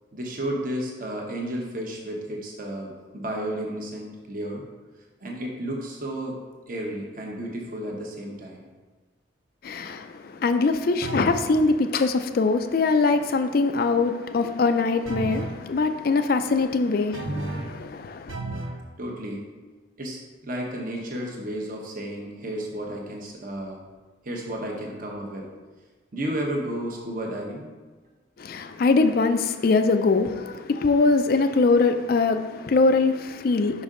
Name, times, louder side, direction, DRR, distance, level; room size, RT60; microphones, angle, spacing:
voice 1, 0.1-4.6 5.2-6.4 6.7-8.6 19.0-19.4 20.0-23.8 24.2-25.5 26.1-27.7, right 1 dB, 45° right, 0.9 m, -32 dB
voice 2, 9.6-10.1 10.4-18.4 28.4-33.8, left 3 dB, 50° left, 0.3 m, -22 dB
sound 1, 11.0-11.5 15.1-15.6 17.1-17.8 18.3-18.8, right 2 dB, 90° right, 0.8 m, -32 dB
5.4 x 5.2 x 3.7 m
head